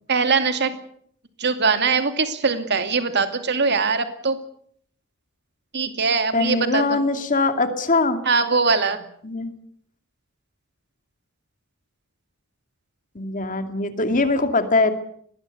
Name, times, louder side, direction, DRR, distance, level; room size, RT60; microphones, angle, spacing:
voice 1, 0.1-0.7 1.4-4.4 5.7-6.8 8.3-9.0, right 4 dB, 55° right, 9 dB, 2.5 m, -21 dB
voice 2, 6.3-8.2 9.2-9.5 13.1-14.9, left 3 dB, 40° left, 8 dB, 2.5 m, -22 dB
22.5 x 19.5 x 8.3 m, 0.63 s
head